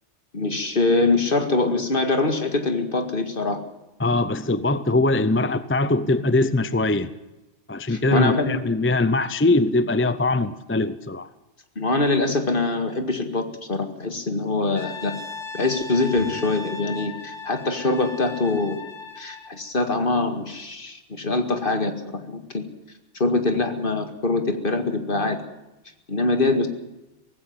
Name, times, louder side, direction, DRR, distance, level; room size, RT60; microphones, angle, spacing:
voice 1, 0.3-3.6 7.9-8.6 11.8-15.1 15.5-18.8 19.2-22.6 23.2-25.4 26.1-26.7, left 3 dB, 45° left, 7 dB, 2.2 m, -23 dB
voice 2, 4.0-7.1 7.7-11.3, left 2 dB, 15° left, 14 dB, 0.5 m, -22 dB
Brass instrument, 14.7-19.6, left 4 dB, 75° left, 2.7 m, -37 dB
18.5 x 16.5 x 9.5 m, 1.0 s
omnidirectional pair, 1.3 m